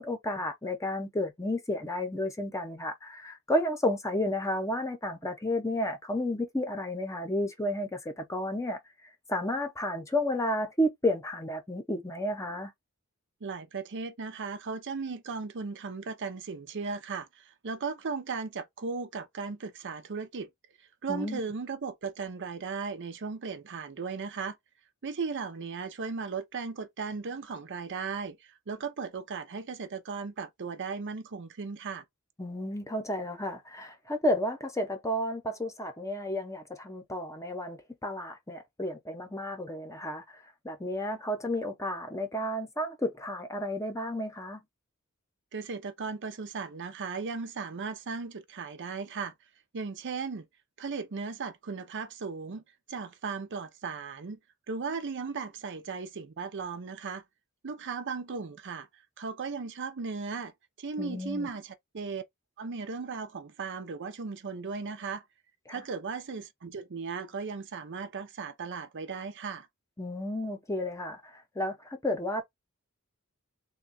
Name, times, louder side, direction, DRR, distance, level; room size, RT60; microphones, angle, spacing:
voice 1, 0.0-8.8 9.3-12.7 21.1-21.4 32.4-44.6 61.0-61.5 65.7-65.8 70.0-72.4, left 1 dB, 15° left, 0.7 m, -32 dB
voice 2, 13.4-20.5 21.0-24.6 25.0-32.0 45.5-49.3 49.7-50.5 50.8-52.6 52.9-54.4 54.7-57.2 57.6-58.9 59.2-60.5 60.8-62.2 62.6-65.3 65.7-69.7, right 5 dB, 55° right, 0.6 m, -36 dB
3.5 x 2.3 x 4.0 m
head